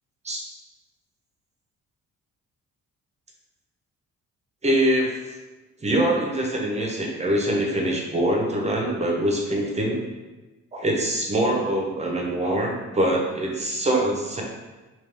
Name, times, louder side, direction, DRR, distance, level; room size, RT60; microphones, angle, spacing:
voice 1, 4.6-5.2 5.8-10.0 10.7-14.4, right 1 dB, 20° right, -1 dB, 0.8 m, -24 dB
3.2 x 3.0 x 3.4 m, 1.2 s
cardioid pair, 90°, 30 cm